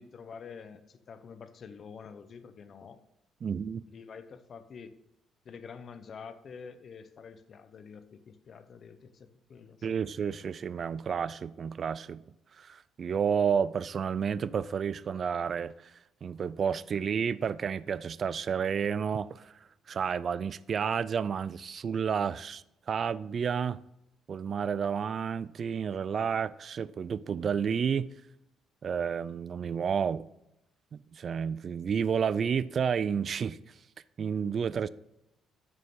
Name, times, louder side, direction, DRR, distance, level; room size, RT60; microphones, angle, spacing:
voice 1, 0.0-3.0 3.9-5.0 5.4-10.0, left 6 dB, 40° left, 0.7 m, -47 dB
voice 2, 3.4-3.8 9.8-12.2 12.6-15.9 16.2-19.5 19.9-23.8 24.3-28.1 28.8-30.3 30.9-33.7 34.2-34.9, right 7 dB, 40° right, 0.3 m, -31 dB
10.5 x 6.6 x 3.7 m
cardioid pair, 135°, 0 cm